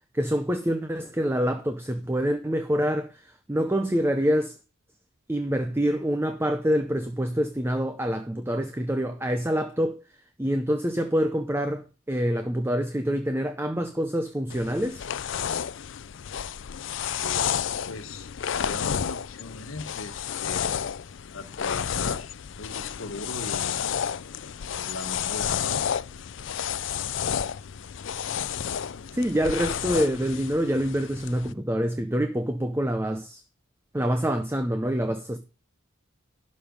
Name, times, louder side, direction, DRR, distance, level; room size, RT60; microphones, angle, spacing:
voice 1, 0.1-4.6 5.3-10.0 10.4-15.1 29.1-33.4 33.9-35.4, equal, 10° right, 0.6 m, -26 dB
sound 1, 14.5-31.5, left 8 dB, 60° left, 0.4 m, -31 dB
voice 2, 17.2-20.8 21.3-24.0 24.8-25.8, left 3 dB, 80° left, 1.3 m, -39 dB
12.0 x 5.3 x 5.2 m
head